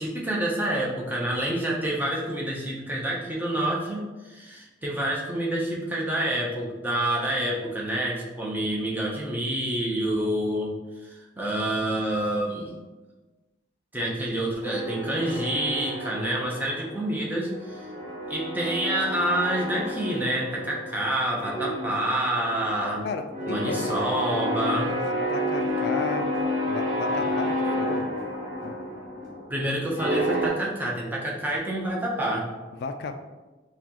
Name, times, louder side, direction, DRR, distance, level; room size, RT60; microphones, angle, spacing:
voice 1, 0.0-10.7 11.0-12.7 13.9-17.8 18.3-23.1 23.5-24.9 29.5-32.5, right 1 dB, 10° right, -3 dB, 0.7 m, -28 dB
sound 1, 14.6-17.2 17.4-21.1 21.4-30.5, equal, 45° right, 1.2 m, -30 dB
voice 2, 23.0-24.0 24.9-25.0 25.3-26.3 26.6-28.1 28.6-28.8 32.7-33.2, left 4 dB, 55° left, 7 dB, 0.3 m, -34 dB
6.0 x 2.3 x 2.9 m, 1.2 s
head